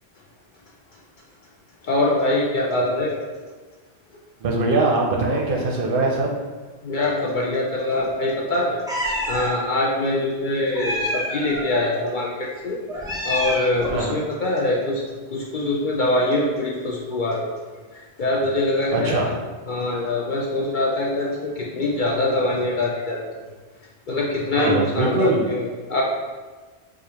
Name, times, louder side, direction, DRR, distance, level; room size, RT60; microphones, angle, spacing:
voice 1, 1.8-3.2 6.8-17.5 18.2-19.2 19.7-23.2 24.1-26.0, left 2 dB, 60° left, -2 dB, 0.6 m, -24 dB
voice 2, 4.4-6.3 13.9-14.2 18.9-19.3 24.6-25.5, right 2 dB, 60° right, 0 dB, 0.7 m, -22 dB
Meow, 8.9-9.5 10.7-11.7 12.9-14.0, equal, 5° right, 0.4 m, -27 dB
4.9 x 2.3 x 2.8 m, 1.3 s
omnidirectional pair, 1.1 m